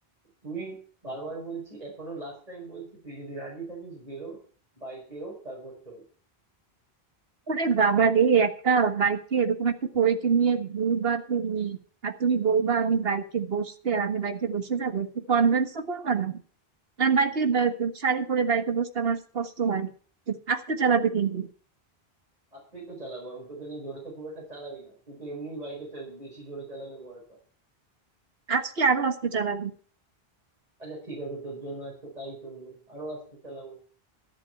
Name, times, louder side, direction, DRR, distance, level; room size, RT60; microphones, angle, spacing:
voice 1, 0.4-4.4 4.8-6.0 22.5-27.4 30.8-33.8, right 2 dB, 40° right, -4 dB, 5.3 m, -39 dB
voice 2, 7.5-11.8 12.0-16.4 17.0-19.9 20.3-21.5 28.5-29.7, right 6 dB, 70° right, 7 dB, 1.8 m, -25 dB
13.5 x 11.0 x 4.6 m, 0.43 s
omnidirectional pair, 1.0 m